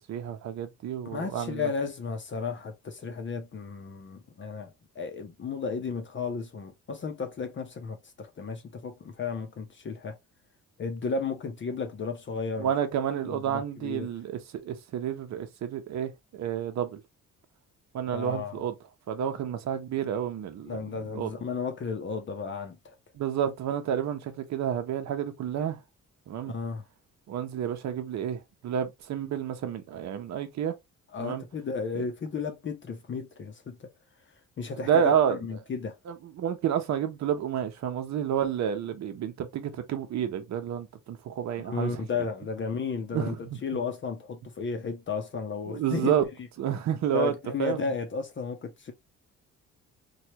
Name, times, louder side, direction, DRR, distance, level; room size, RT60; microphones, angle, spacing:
voice 1, 0.1-1.7 12.6-17.0 17.9-18.7 19.1-20.8 21.1-21.3 23.2-25.8 26.3-26.5 27.3-30.7 31.2-31.4 32.0-32.1 34.7-35.4 36.1-42.0 43.1-43.6 45.7-46.2 46.6-47.3 47.6-47.8, right 9 dB, 65° right, 0.8 m, -30 dB
voice 2, 1.0-10.2 10.8-12.7 13.2-14.1 18.1-18.6 20.7-22.9 26.4-26.8 31.1-33.9 34.6-36.0 41.6-46.1 47.1-48.9, left 5 dB, 40° left, 0.7 m, -34 dB
3.1 x 2.3 x 2.8 m
cardioid pair, 90°, 30 cm